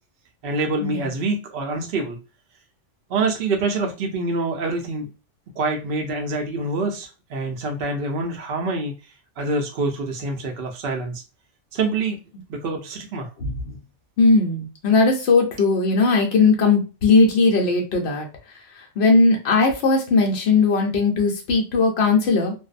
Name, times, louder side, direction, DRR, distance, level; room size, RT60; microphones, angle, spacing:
voice 1, 0.4-2.2 3.1-5.1 5.6-8.9 9.4-11.2 11.7-12.2 12.5-13.3, right 3 dB, 60° right, 2 dB, 0.8 m, -26 dB
voice 2, 13.4-13.8 14.2-18.3 19.0-22.5, left 3 dB, 65° left, 1 dB, 0.9 m, -18 dB
2.5 x 2.0 x 2.5 m, 0.32 s
omnidirectional pair, 1.2 m